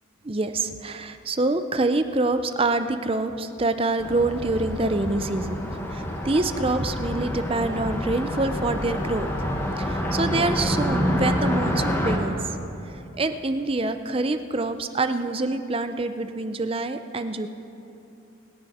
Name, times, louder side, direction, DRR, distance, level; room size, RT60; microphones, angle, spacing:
voice 1, 0.2-5.6 5.9-9.5 9.8-12.4 13.2-17.5, right 2 dB, 25° right, 9 dB, 0.5 m, -26 dB
Car passing by, 4.0-12.2, equal, 10° left, 1.4 m, -27 dB
27.5 x 10.0 x 4.3 m, 2.8 s
head